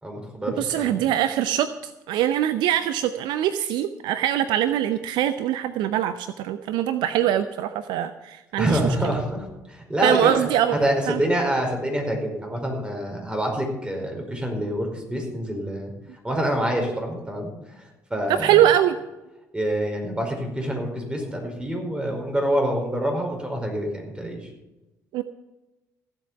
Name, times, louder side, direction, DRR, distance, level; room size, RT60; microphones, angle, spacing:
voice 1, 0.0-1.0 8.6-10.5 10.8-15.9 16.2-17.5 17.8-17.9 18.1-18.6 19.5-24.4, right 1 dB, 10° right, 2 dB, 4.9 m, -26 dB
voice 2, 0.6-8.8 10.0-10.8 11.1-11.2 18.3-19.0 25.1-25.2, right 11 dB, 60° right, 11 dB, 0.6 m, -23 dB
15.0 x 7.8 x 7.0 m, 1.0 s
figure-of-eight pair, 50°, 9 cm